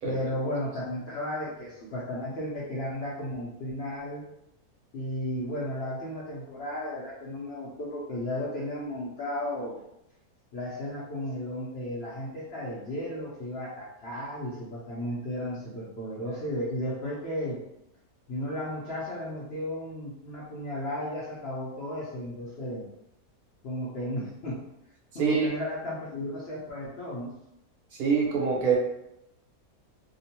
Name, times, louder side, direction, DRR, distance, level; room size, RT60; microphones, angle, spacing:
voice 1, 0.0-4.2 4.9-9.8 10.5-17.6 18.3-22.9 23.6-24.6 25.1-27.3, left 1 dB, 60° left, -5 dB, 0.7 m, -34 dB
voice 2, 25.1-25.5 27.9-28.8, right 5 dB, 85° right, -3 dB, 1.3 m, -25 dB
2.9 x 2.1 x 2.8 m, 0.81 s
omnidirectional pair, 1.6 m